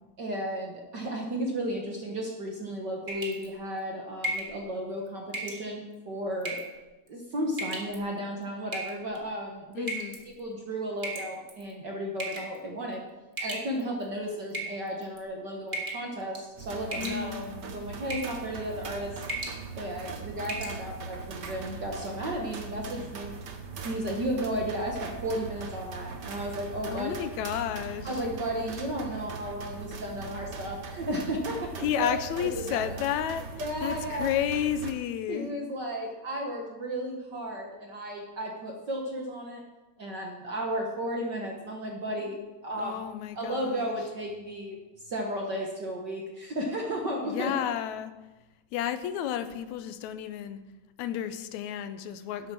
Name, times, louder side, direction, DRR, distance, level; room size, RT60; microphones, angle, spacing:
voice 1, 0.2-6.6 7.1-9.9 10.4-13.0 13.4-19.1 19.8-23.3 23.8-27.2 28.0-32.8 33.6-34.3 35.3-39.6 40.0-43.0 43.3-44.8 45.1-47.5, equal, 50° right, 0 dB, 1.3 m, -34 dB
sound 1, 3.1-3.5 4.2-4.5 5.3-5.6 6.4-6.8 7.5-8.0 8.7-9.2 9.9-10.2 11.0-11.6 12.2-12.6 13.4-14.0 14.5-15.2 15.7-16.1 16.3-16.6 16.9-17.5 18.1-18.4 18.7-18.9 19.2-19.6 20.0-20.1 20.4-20.8, right 2 dB, 30° right, 0.9 m, -35 dB
voice 2, 9.8-10.2 16.9-17.7 26.9-28.1 31.8-33.5 33.8-35.5 42.8-44.0 47.2-48.1 48.7-50.6 51.0-52.5, left 10 dB, 75° left, 10 dB, 1.9 m, -32 dB
sound 2, 16.6-34.9, right 5 dB, 85° right, 0.9 m, -41 dB
11.5 x 8.0 x 6.3 m, 1.1 s
omnidirectional pair, 3.6 m